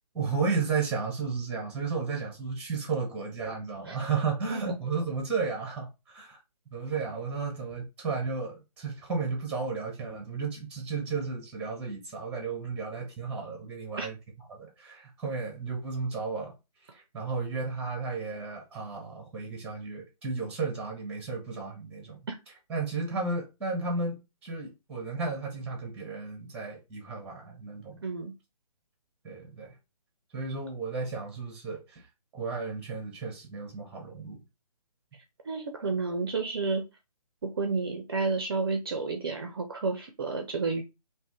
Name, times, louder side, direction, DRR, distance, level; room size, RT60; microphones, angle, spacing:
voice 1, 0.1-6.4 6.7-14.2 14.5-16.5 16.9-22.3 22.7-28.0 29.2-29.7 30.3-32.1 32.3-34.4, right 4 dB, 5° right, 0.7 m, -33 dB
voice 2, 28.0-28.3 35.5-36.8 37.6-40.8, right 4 dB, 35° right, 0.4 m, -30 dB
2.5 x 2.4 x 3.6 m
figure-of-eight pair, 145°, 20 cm